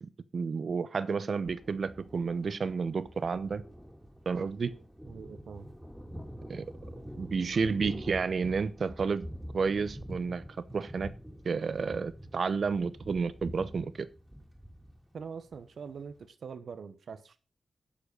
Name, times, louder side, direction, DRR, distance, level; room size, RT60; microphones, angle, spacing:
voice 1, 0.0-3.6 4.3-4.8 6.5-6.6 7.2-9.3 9.5-10.4 10.7-11.1 11.4-14.1, right 5 dB, 55° right, 0.9 m, -31 dB
Thunder, 1.4-16.2, equal, 5° right, 2.9 m, -46 dB
voice 2, 5.1-5.7 15.1-17.4, right 6 dB, 85° right, 1.2 m, -43 dB
11.5 x 7.7 x 5.5 m
wide cardioid pair, 145°, 0 cm